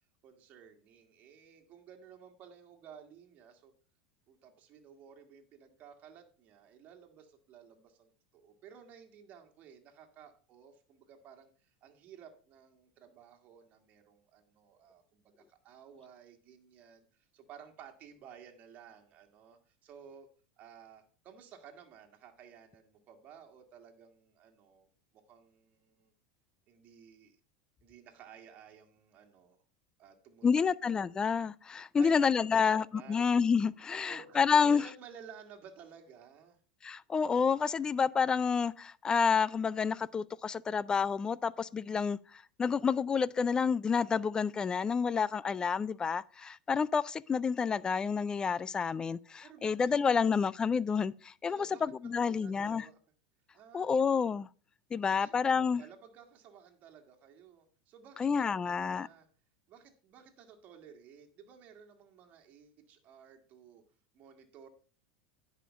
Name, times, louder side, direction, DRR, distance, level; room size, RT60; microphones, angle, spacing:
voice 1, 0.2-3.7 4.3-17.0 17.3-20.3 20.6-24.9 25.1-26.1 26.7-27.4 27.8-29.6 30.0-30.7 31.9-33.3 34.1-36.6 49.4-50.3 51.5-53.0 53.5-53.9 55.0-59.3 59.7-63.8 64.1-64.7, right 7 dB, 40° right, 1.7 m, -55 dB
voice 2, 30.4-34.8 36.8-52.8 53.7-54.5 54.9-55.8 58.2-59.1, left 6 dB, 20° left, 0.3 m, -29 dB
10.0 x 5.1 x 5.2 m
supercardioid pair, 115°, 4 cm